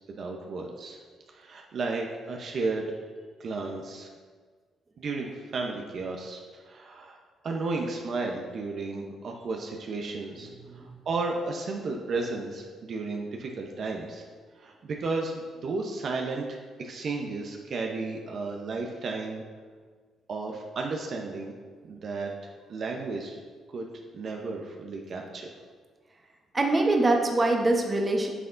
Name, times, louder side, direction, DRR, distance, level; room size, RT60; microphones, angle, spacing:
voice 1, 0.1-1.0 1.3-3.0 3.4-4.1 5.0-7.2 7.4-14.3 14.6-19.4 20.3-21.5 21.9-23.4 23.7-23.9 24.1-25.5, right 3 dB, 55° right, 1 dB, 0.7 m, -33 dB
voice 2, 26.5-28.3, right 2 dB, 25° right, 2 dB, 0.9 m, -24 dB
9.4 x 5.8 x 2.6 m, 1.5 s
cardioid pair, 90°, 0 cm